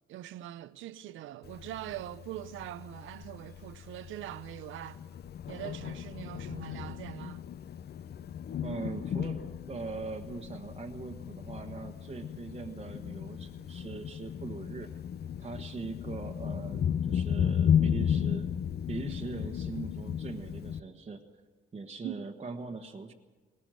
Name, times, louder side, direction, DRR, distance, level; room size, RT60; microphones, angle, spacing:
voice 1, 0.1-5.0 5.5-7.4 22.0-22.2, right 13 dB, 80° right, 0.7 m, -42 dB
Thunder, 1.4-20.8, left 8 dB, 55° left, 0.7 m, -34 dB
voice 2, 8.6-14.9 15.4-18.5 18.9-21.2 21.7-23.1, right 4 dB, 30° right, 1.3 m, -41 dB
20.0 x 19.0 x 7.6 m
cardioid pair, 90°, 20 cm